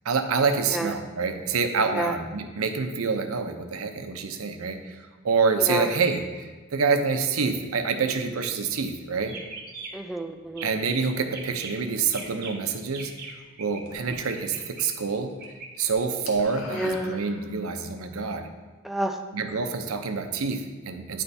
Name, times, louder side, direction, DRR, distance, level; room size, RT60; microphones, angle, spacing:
voice 1, 0.0-9.4 10.6-13.1 13.6-15.3 15.8-18.5 19.3-21.2, right 5 dB, 85° right, 7 dB, 0.6 m, -27 dB
voice 2, 5.7-6.0 9.9-10.7 16.7-17.2 18.8-19.2, right 1 dB, ahead, 4 dB, 0.4 m, -29 dB
sound 1, 8.7-8.9 9.2-10.1 10.5-11.0 11.3-13.8 14.1-15.7, right 4 dB, 50° right, 1.0 m, -41 dB
sound 2, 13.9-14.8 15.1-15.5 15.7-17.8, left 2 dB, 75° left, 1.1 m, -42 dB
10.0 x 3.4 x 4.1 m, 1.3 s
head